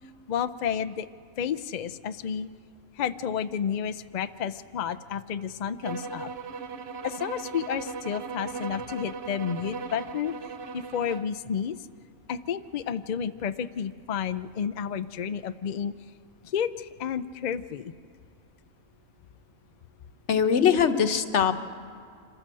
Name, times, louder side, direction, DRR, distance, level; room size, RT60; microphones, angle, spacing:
voice 1, 0.3-1.1 1.4-2.5 3.0-6.3 7.0-10.3 10.7-11.8 12.3-15.9 16.4-17.9, left 8 dB, 80° left, 11 dB, 0.4 m, -31 dB
sound 1, 5.8-11.3, right 4 dB, 50° right, 1.0 m, -38 dB
voice 2, 20.3-21.6, left 7 dB, 55° left, 8 dB, 1.2 m, -22 dB
26.5 x 13.5 x 7.5 m, 2.4 s
omnidirectional pair, 1.5 m